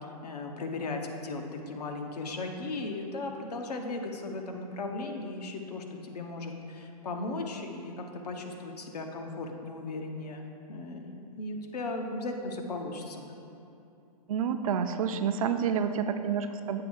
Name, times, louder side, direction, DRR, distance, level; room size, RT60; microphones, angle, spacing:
voice 1, 0.0-13.3, left 2 dB, 85° left, 3 dB, 0.9 m, -37 dB
voice 2, 14.3-16.8, right 7 dB, 60° right, 8 dB, 0.5 m, -29 dB
7.7 x 3.1 x 6.3 m, 2.9 s
hypercardioid pair, 150°, 20 cm